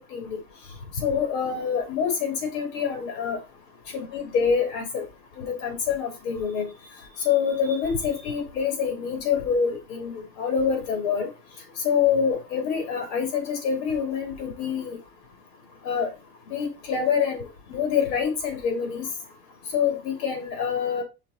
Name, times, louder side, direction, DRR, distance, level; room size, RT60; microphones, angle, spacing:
voice 1, 1.0-3.4 3.9-5.0 5.4-6.7 7.2-11.3 11.8-15.0 15.8-16.1 16.5-19.1 19.7-21.0, left 6 dB, 80° left, 3.0 m, -26 dB
5.7 x 4.2 x 4.1 m
supercardioid pair, 125°, 49 cm